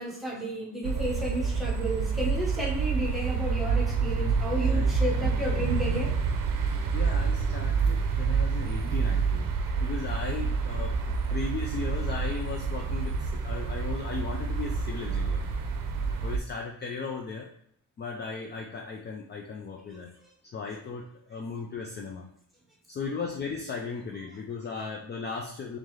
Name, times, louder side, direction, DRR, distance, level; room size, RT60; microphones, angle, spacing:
voice 1, 0.0-6.1, equal, ahead, -5 dB, 1.0 m, -32 dB
sound 1, 0.8-16.4, right 5 dB, 90° right, 0.6 m, -28 dB
voice 2, 4.6-4.9 6.9-9.5 9.8-15.4 16.2-17.5 18.0-20.2 20.5-22.3 22.9-25.8, left 4 dB, 35° left, 1 dB, 0.4 m, -36 dB
3.7 x 3.2 x 3.1 m, 0.72 s
cardioid pair, 160°, 33 cm